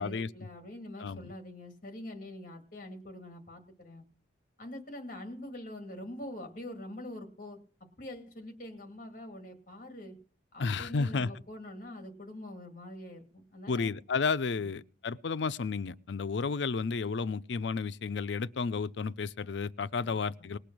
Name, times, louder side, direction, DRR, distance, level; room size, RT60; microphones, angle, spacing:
voice 1, 0.0-4.0 4.6-7.6 8.0-10.2 10.5-13.9 14.6-14.8 20.0-20.5, left 1 dB, 45° left, 2.3 m, -44 dB
voice 2, 1.0-1.3 10.6-11.3 13.7-20.6, left 4 dB, 80° left, 0.5 m, -32 dB
19.5 x 6.8 x 6.1 m
head